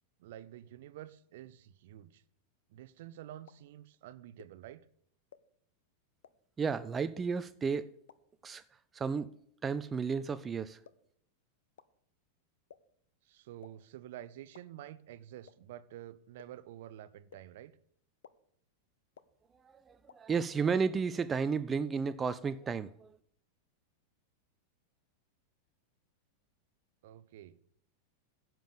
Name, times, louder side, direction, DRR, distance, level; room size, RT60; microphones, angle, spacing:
voice 1, 0.2-2.2 2.7-4.9 13.3-17.7 27.0-27.6, right 12 dB, 55° right, 0.7 m, -49 dB
sound 1, 3.5-3.6 4.4-4.5 5.3-5.4 6.2-6.3 7.2-7.3 8.1-8.2 9.0-9.1 9.9-10.0 10.8-10.9 11.8-11.9 12.7-12.8 13.6-13.7 14.5-14.6 15.5-15.6 16.4-16.5 17.3-17.4 18.2-18.3 19.2-19.3 20.1-20.2, left 9 dB, 65° left, 0.7 m, -53 dB
voice 2, 6.6-7.9 8.4-8.6 8.9-9.3 9.6-10.8 19.9-23.1, right 5 dB, 20° right, 0.5 m, -32 dB
10.5 x 7.6 x 6.8 m
figure-of-eight pair, 90°, 0 cm